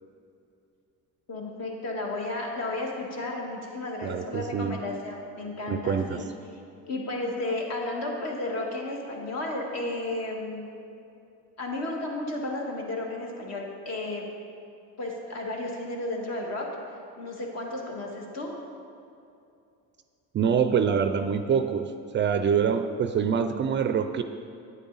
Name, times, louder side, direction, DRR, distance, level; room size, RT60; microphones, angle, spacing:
voice 1, 1.3-6.2 6.9-10.7 11.6-14.3 15.0-16.7 17.2-18.6, left 2 dB, 50° left, 0 dB, 1.7 m, -33 dB
voice 2, 4.0-4.8 5.7-6.2 20.3-24.2, right 7 dB, 35° right, 9 dB, 0.4 m, -25 dB
9.5 x 8.4 x 4.0 m, 2.6 s
cardioid pair, 115°, 33 cm